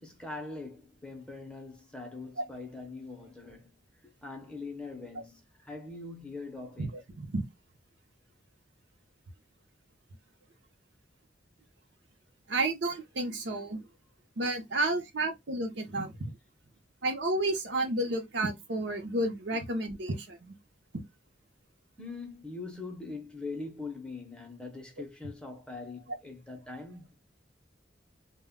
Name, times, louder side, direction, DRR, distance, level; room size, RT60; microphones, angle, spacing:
voice 1, 0.0-3.7 4.0-7.0 22.0-27.1, left 3 dB, 5° left, 0.6 m, -42 dB
voice 2, 12.5-13.8 14.4-16.1 17.0-20.5, right 2 dB, 65° right, 0.6 m, -31 dB
2.1 x 2.0 x 3.5 m
head